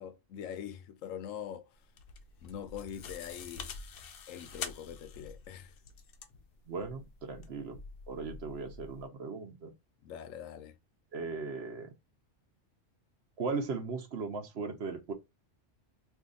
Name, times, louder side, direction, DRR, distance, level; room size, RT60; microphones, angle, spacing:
voice 1, 0.0-1.6 2.4-3.7 4.3-5.7 10.0-10.8, left 9 dB, 80° left, 1.0 m, -43 dB
sound 1, 1.7-9.1, left 5 dB, 60° left, 0.7 m, -47 dB
voice 2, 6.7-7.8 8.1-9.7 11.1-11.9 13.4-15.1, right 4 dB, 60° right, 0.9 m, -37 dB
2.7 x 2.5 x 3.7 m
omnidirectional pair, 1.3 m